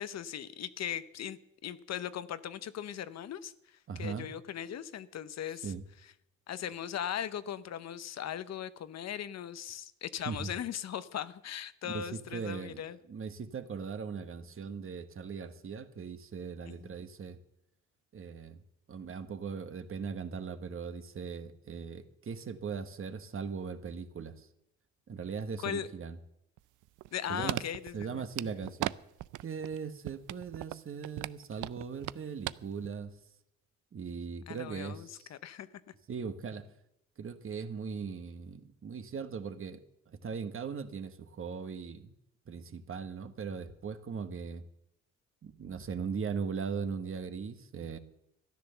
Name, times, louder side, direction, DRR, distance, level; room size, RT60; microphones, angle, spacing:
voice 1, 0.0-5.7 6.5-13.0 16.7-16.9 25.6-25.9 27.1-28.2 34.5-35.7, left 9 dB, 60° left, 0.8 m, -39 dB
voice 2, 3.9-4.3 5.6-5.8 10.2-10.5 11.8-12.8 13.1-17.4 18.1-18.6 18.9-24.5 25.1-26.2 27.3-27.6 27.9-28.9 29.4-33.2 33.9-35.3 36.1-36.7 37.2-42.1 42.4-44.6 45.4-48.0, right 6 dB, 45° right, 1.3 m, -39 dB
paper cup, 26.6-28.9 29.2-29.8 30.1-32.5 32.8-32.9, right 17 dB, 85° right, 0.5 m, -37 dB
13.5 x 10.5 x 6.8 m
cardioid pair, 90°, 30 cm